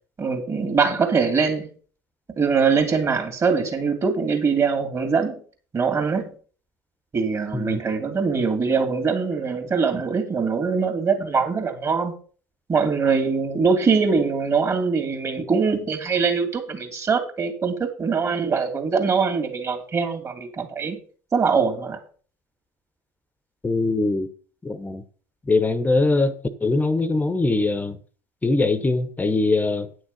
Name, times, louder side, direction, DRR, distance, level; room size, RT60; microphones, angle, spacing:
voice 1, 0.2-1.7 2.4-5.4 5.7-6.3 7.1-12.1 12.7-21.0 21.3-22.0, right 5 dB, 30° right, 2.5 m, -22 dB
voice 2, 23.6-24.3 24.6-25.0 25.5-26.3 26.6-28.0 28.4-29.9, left 3 dB, 15° left, 1.0 m, -22 dB
9.4 x 6.3 x 5.4 m
hypercardioid pair, 70°, 10 cm